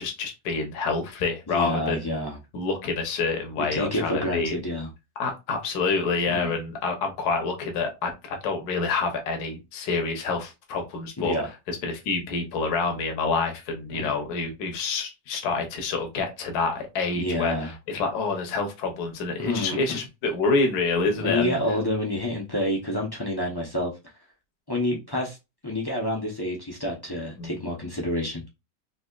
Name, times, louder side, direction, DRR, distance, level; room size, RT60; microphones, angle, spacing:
voice 1, 0.0-2.1 2.5-4.6 5.2-11.4 11.7-21.6 27.4-27.5, left 4 dB, 65° left, 1.3 m, -27 dB
voice 2, 1.5-2.4 3.6-4.9 6.3-6.5 11.2-11.5 13.9-14.1 17.2-17.7 19.4-20.0 21.2-23.9 24.7-25.4 25.6-28.4, left 1 dB, 35° left, 0.3 m, -28 dB
4.0 x 2.7 x 2.3 m
omnidirectional pair, 1.9 m